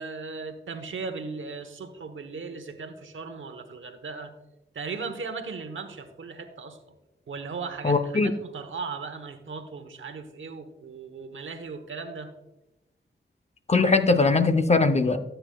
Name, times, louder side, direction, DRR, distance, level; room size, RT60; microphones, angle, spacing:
voice 1, 0.0-4.3 4.7-6.8 7.3-12.3, right 4 dB, 80° right, 7 dB, 1.0 m, -37 dB
voice 2, 7.8-8.3 13.7-15.2, left 3 dB, 35° left, 9 dB, 0.6 m, -20 dB
13.0 x 7.7 x 2.3 m, 0.98 s
wide cardioid pair, 80°, 20 cm